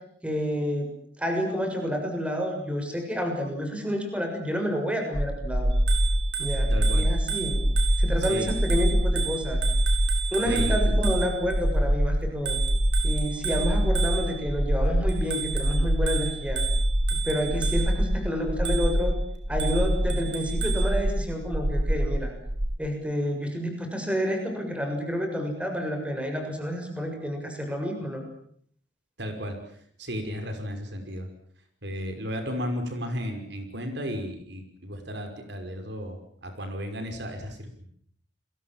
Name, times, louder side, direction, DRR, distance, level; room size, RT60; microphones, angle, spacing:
voice 1, 0.2-0.9 1.2-5.7 6.4-7.6 8.0-9.6 10.3-12.6 13.0-16.6 17.2-19.1 19.5-22.3 22.8-28.2, equal, 5° right, 3 dB, 6.8 m, -29 dB
sound 1, 5.1-22.7, equal, 30° right, 1.2 m, -25 dB
Bicycle bell, 5.7-11.6 12.4-14.5 15.1-18.1 18.6-19.1 19.6-20.9, right 8 dB, 85° right, 6.3 m, -34 dB
voice 2, 6.7-7.1 8.3-8.5 10.4-11.0 29.2-29.6 30.0-31.3 31.8-37.9, equal, 65° right, 6 dB, 5.7 m, -34 dB
30.0 x 22.5 x 7.5 m, 0.64 s
head